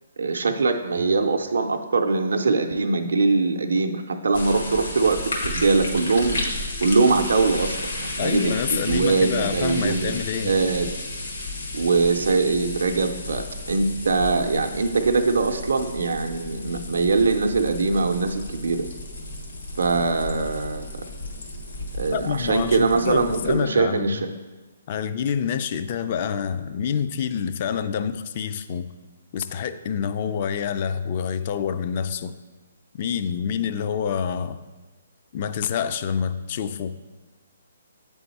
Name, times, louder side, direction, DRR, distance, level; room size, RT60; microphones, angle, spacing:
voice 1, 0.2-6.4 6.8-10.1 10.4-10.9 11.7-18.9 19.8-20.9 22.0-24.3, right 4 dB, 80° right, 4 dB, 0.5 m, -22 dB
sound 1, 4.3-23.5, left 2 dB, 80° left, 1.3 m, -33 dB
voice 2, 8.2-10.5 22.1-24.3 24.9-28.9 29.3-32.3 33.0-34.6 35.3-37.0, left 7 dB, 45° left, 11 dB, 0.3 m, -27 dB
8.2 x 3.5 x 4.1 m, 1.3 s
hypercardioid pair, 145°, 0 cm